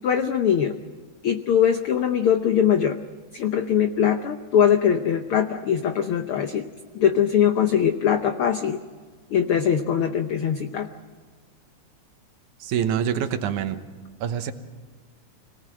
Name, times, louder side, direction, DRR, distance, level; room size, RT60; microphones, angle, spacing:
voice 1, 0.0-0.7 1.2-3.0 3.3-6.7 6.9-8.8 9.3-10.9, left 8 dB, 90° left, 7 dB, 1.2 m, -21 dB
voice 2, 12.6-13.8 14.2-14.5, right 9 dB, 75° right, 9 dB, 2.4 m, -25 dB
25.5 x 18.5 x 7.7 m, 1.4 s
omnidirectional pair, 3.7 m